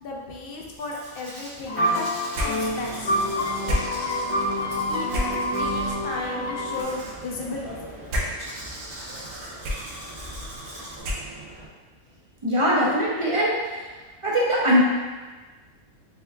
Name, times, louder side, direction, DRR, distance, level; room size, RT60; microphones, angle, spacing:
voice 1, 0.0-2.1 2.4-3.1 4.9-8.0, left 3 dB, 60° left, -1 dB, 0.6 m, -35 dB
Domestic sounds home sounds, 0.8-11.0, right 1 dB, 70° right, 1.2 m, -41 dB
sound 1, 1.7-6.8, equal, 85° left, 1.0 m, -27 dB
sound 2, 2.3-11.7, equal, 85° right, 1.1 m, -34 dB
voice 2, 12.4-13.9 14.2-14.8, equal, 55° right, -5 dB, 0.3 m, -21 dB
3.7 x 3.3 x 2.3 m, 1.3 s
omnidirectional pair, 1.3 m